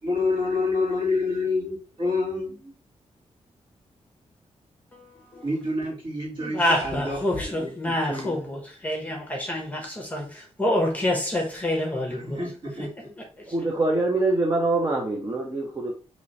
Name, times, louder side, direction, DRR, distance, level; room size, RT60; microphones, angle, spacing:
voice 1, 0.0-2.7 5.4-8.3 12.3-12.9, left 3 dB, 45° right, 2.3 m, -28 dB
voice 2, 4.9-5.5 6.4-12.4 12.8-12.9 13.4-13.5, left 1 dB, 15° left, 0.9 m, -27 dB
voice 3, 13.5-15.9, right 2 dB, 25° right, 0.7 m, -24 dB
3.1 x 3.0 x 3.9 m
wide cardioid pair, 170°, 12 cm